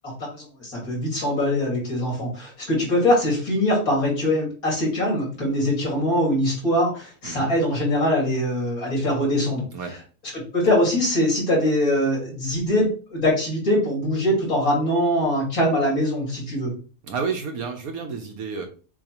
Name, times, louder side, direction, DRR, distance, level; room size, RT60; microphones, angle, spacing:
voice 1, 0.2-9.6 10.5-16.7, left 1 dB, 55° left, -3 dB, 3.0 m, -22 dB
voice 2, 17.0-18.7, right 5 dB, 65° right, 4 dB, 1.1 m, -30 dB
7.1 x 2.4 x 2.9 m, 0.37 s
omnidirectional pair, 1.8 m